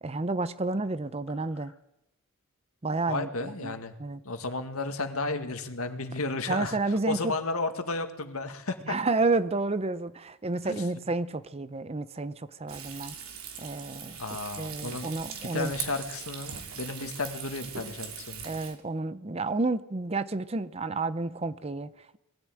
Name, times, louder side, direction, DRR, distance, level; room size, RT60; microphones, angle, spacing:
voice 1, 0.0-1.7 2.8-3.7 4.0-4.2 6.5-7.3 8.9-13.1 13.6-14.2 14.6-15.7 18.4-22.2, right 3 dB, 30° right, 14 dB, 0.7 m, -30 dB
voice 2, 3.1-3.9 4.3-9.0 10.6-10.8 14.2-15.1 15.4-18.5, left 3 dB, 85° left, 7 dB, 1.9 m, -33 dB
Frying (food), 12.7-18.7, right 7 dB, 85° right, 2.7 m, -40 dB
20.5 x 14.5 x 9.0 m, 0.88 s
head